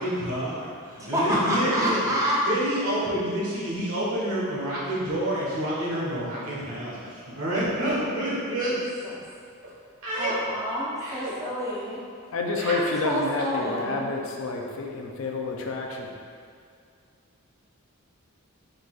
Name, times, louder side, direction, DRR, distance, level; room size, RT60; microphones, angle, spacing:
voice 1, 0.0-2.2 2.5-8.8 10.0-10.3 11.0-11.3 12.6-12.7, right 1 dB, 85° right, -7 dB, 1.3 m, -28 dB
voice 2, 1.1-2.4 10.2-12.0 13.0-14.1, equal, 15° right, -6 dB, 0.6 m, -27 dB
voice 3, 12.3-16.1, left 3 dB, 70° left, 1 dB, 0.5 m, -29 dB
4.7 x 3.9 x 2.4 m, 2.3 s
head